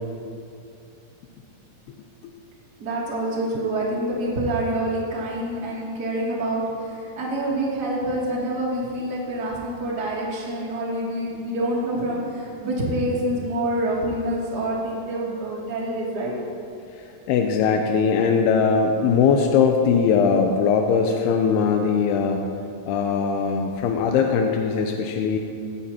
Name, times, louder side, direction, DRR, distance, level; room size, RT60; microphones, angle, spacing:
voice 1, 2.8-16.3, right 1 dB, 30° right, -5 dB, 2.6 m, -26 dB
voice 2, 17.3-22.4 22.9-25.4, left 6 dB, 85° left, 3 dB, 2.7 m, -20 dB
17.0 x 16.0 x 3.0 m, 2.5 s
omnidirectional pair, 4.8 m